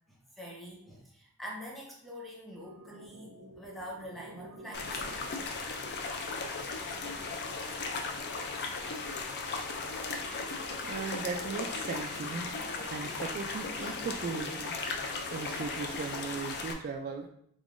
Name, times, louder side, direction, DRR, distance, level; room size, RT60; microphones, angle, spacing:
voice 1, 0.1-5.0, equal, ahead, -4 dB, 0.8 m, -45 dB
sound 1, 2.5-7.5, right 1 dB, 70° right, 0.8 m, -52 dB
sound 2, 4.7-16.7, left 4 dB, 50° left, 0.4 m, -37 dB
voice 2, 10.0-17.3, right 4 dB, 45° right, 2 dB, 0.3 m, -38 dB
3.5 x 3.5 x 2.5 m, 0.68 s
head